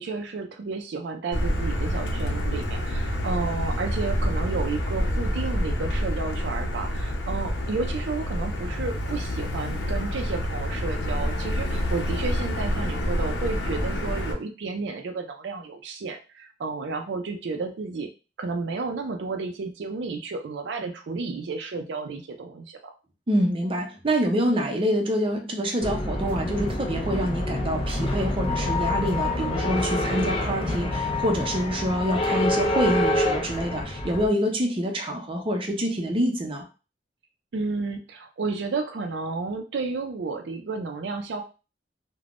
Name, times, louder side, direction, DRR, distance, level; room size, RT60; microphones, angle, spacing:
voice 1, 0.0-18.1 18.4-22.9 37.5-41.4, right 4 dB, 80° right, 4 dB, 0.4 m, -32 dB
Motor vehicle (road), 1.3-14.3, equal, 85° left, 0.6 m, -27 dB
voice 2, 23.3-36.6, equal, 30° right, 1 dB, 0.6 m, -26 dB
sound 1, 25.8-34.3, left 1 dB, 30° left, 0.5 m, -27 dB
3.3 x 2.1 x 2.4 m, 0.33 s
head